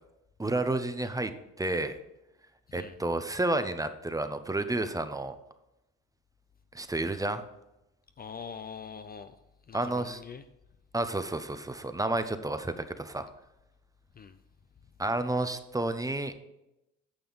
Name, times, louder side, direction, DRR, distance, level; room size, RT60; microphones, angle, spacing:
voice 1, 0.4-2.0 2.7-5.4 6.7-7.4 9.7-10.2 10.9-13.3 15.0-16.3, right 2 dB, 10° right, 9 dB, 0.7 m, -31 dB
voice 2, 8.2-9.3 9.7-10.4 14.2-14.4, left 6 dB, 30° left, 10 dB, 0.5 m, -43 dB
9.4 x 6.7 x 4.0 m, 0.90 s
supercardioid pair, 85°, 31 cm